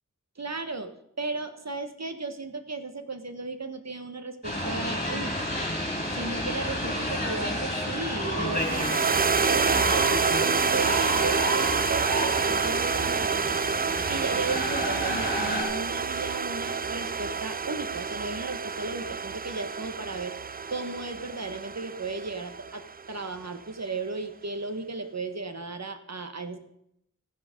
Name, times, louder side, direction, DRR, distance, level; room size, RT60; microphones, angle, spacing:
voice 1, 0.4-5.5 6.1-9.0 9.4-13.6 14.1-20.4 20.7-26.6, right 3 dB, 55° right, 9 dB, 1.4 m, -35 dB
sound 1, 4.4-15.6, equal, 25° left, 4.9 m, -31 dB
sound 2, 8.6-23.0, right 5 dB, 30° right, 0.4 m, -28 dB
14.5 x 9.9 x 5.2 m, 0.76 s
wide cardioid pair, 40°, 32 cm